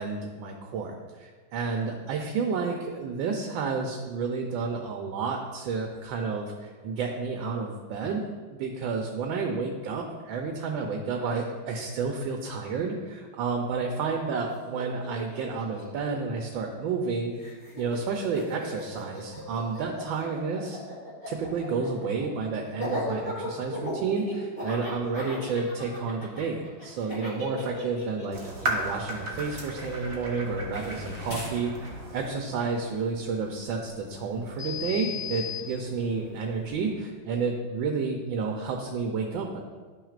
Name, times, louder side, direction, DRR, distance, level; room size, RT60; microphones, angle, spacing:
voice 1, 0.0-20.8 21.3-39.6, right 4 dB, 75° right, 2 dB, 1.4 m, -31 dB
Laughter, 14.4-14.5 14.7-17.1 17.4-30.4, left 1 dB, 25° left, 2.5 m, -37 dB
sound 1, 28.3-32.3, right 1 dB, 45° right, 1.6 m, -35 dB
sound 2, 30.7-36.9, left 7 dB, 70° left, 2.4 m, -40 dB
12.0 x 6.0 x 2.5 m, 1.4 s
omnidirectional pair, 2.2 m